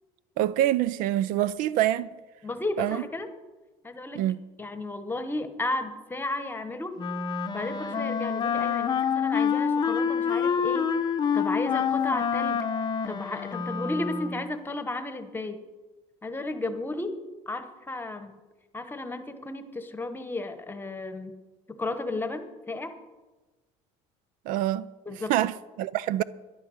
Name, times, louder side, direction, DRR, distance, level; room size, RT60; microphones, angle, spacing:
voice 1, 0.4-2.1 2.8-3.0 4.1-4.4 24.5-24.9 25.3-26.2, right 13 dB, 70° right, 0.5 m, -25 dB
voice 2, 2.4-3.3 3.8-4.3 4.6-7.0 7.5-10.9 11.3-12.6 13.1-15.6 16.2-18.4 18.7-21.4 21.8-22.9 25.0-25.3, left 2 dB, 15° left, 1.1 m, -33 dB
Wind instrument woodwind instrument, 7.0-14.5, left 7 dB, 30° left, 0.7 m, -27 dB
12.5 x 11.0 x 6.4 m
cardioid pair, 130°, 14 cm